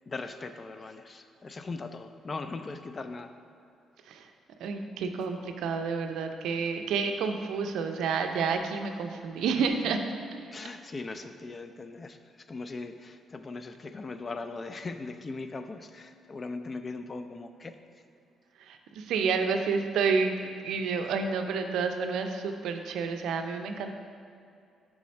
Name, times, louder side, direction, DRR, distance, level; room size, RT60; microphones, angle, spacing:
voice 1, 0.1-3.3 10.5-12.2 12.5-17.7, left 3 dB, 35° left, 9 dB, 0.4 m, -39 dB
voice 2, 4.6-10.6 18.6-23.9, right 5 dB, 85° right, 6 dB, 0.4 m, -30 dB
4.8 x 4.2 x 5.2 m, 2.5 s
cardioid pair, 90°, 0 cm